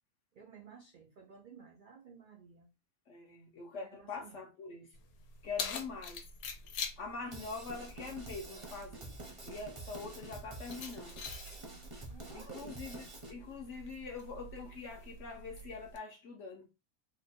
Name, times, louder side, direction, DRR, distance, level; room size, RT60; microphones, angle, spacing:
voice 1, 0.4-2.7 3.9-4.4 12.1-12.8, right 6 dB, 75° right, 0.4 m, -54 dB
voice 2, 3.1-5.0 5.4-6.2 7.0-9.2 9.4-11.3 12.3-16.7, left 4 dB, 65° left, 0.8 m, -44 dB
Keys jangling, 4.9-16.0, left 4 dB, 90° left, 1.1 m, -46 dB
Drum kit / Drum, 7.3-13.3, right 2 dB, 30° right, 0.6 m, -48 dB
2.9 x 2.2 x 4.1 m
omnidirectional pair, 1.5 m